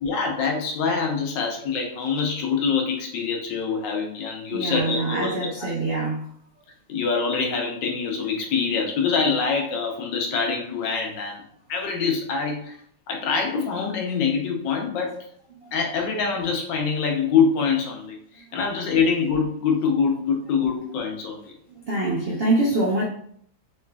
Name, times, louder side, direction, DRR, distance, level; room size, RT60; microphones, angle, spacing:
voice 1, 0.0-5.5 6.9-11.4 11.7-12.7 13.1-15.1 15.7-18.2 18.5-21.5, left 5 dB, 75° left, 1 dB, 1.3 m, -24 dB
voice 2, 4.5-6.3 21.9-23.0, right 2 dB, 70° right, -5 dB, 0.5 m, -24 dB
3.2 x 3.1 x 2.2 m, 0.63 s
omnidirectional pair, 2.0 m